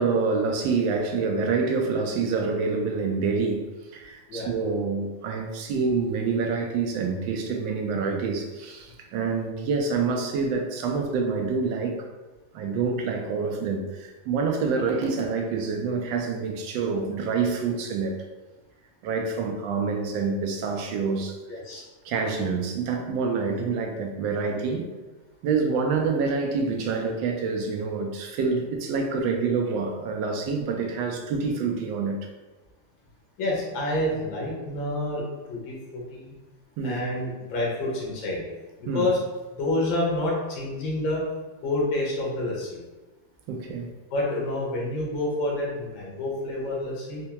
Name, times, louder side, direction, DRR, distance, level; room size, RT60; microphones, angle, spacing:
voice 1, 0.0-3.6 3.9-12.1 12.5-18.2 19.0-21.4 22.0-24.9 25.4-32.2 36.8-37.0 38.9-39.1 43.5-43.9, right 4 dB, 85° right, 3 dB, 1.3 m, -27 dB
voice 2, 21.5-21.8 33.4-35.2 35.5-36.3 36.8-38.4 38.9-39.2 39.6-41.2 41.6-42.8 44.1-47.2, left 1 dB, 85° left, -3 dB, 1.6 m, -28 dB
4.4 x 2.1 x 2.8 m, 1.2 s
omnidirectional pair, 2.0 m